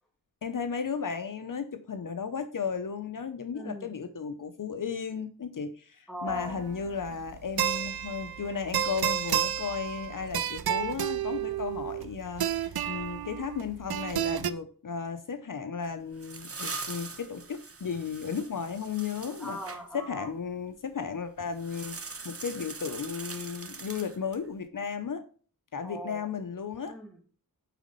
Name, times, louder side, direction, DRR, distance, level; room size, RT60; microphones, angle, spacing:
voice 1, 0.4-19.6 19.9-25.3 25.7-27.0, left 6 dB, 60° left, 8 dB, 0.8 m, -35 dB
voice 2, 3.5-4.0 6.1-6.6 19.4-20.3 25.8-26.3 26.8-27.2, equal, ahead, 2 dB, 2.6 m, -39 dB
sound 1, 6.3-14.5, right 10 dB, 90° right, 0.6 m, -31 dB
sound 2, 15.8-19.8 21.5-24.5, right 4 dB, 40° right, 1.0 m, -42 dB
9.1 x 4.1 x 5.3 m, 0.41 s
wide cardioid pair, 65°, 36 cm